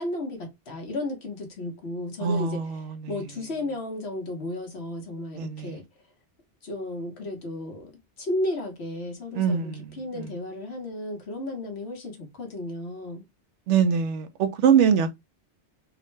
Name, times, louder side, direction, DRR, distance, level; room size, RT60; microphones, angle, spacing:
voice 1, 0.0-5.8 6.6-7.9 8.2-13.2, left 1 dB, 65° left, 1.3 m, -34 dB
voice 2, 2.2-3.0 5.3-5.8 9.3-10.3 13.7-15.1, right 7 dB, 85° right, 0.9 m, -23 dB
3.6 x 2.1 x 3.1 m
omnidirectional pair, 1.2 m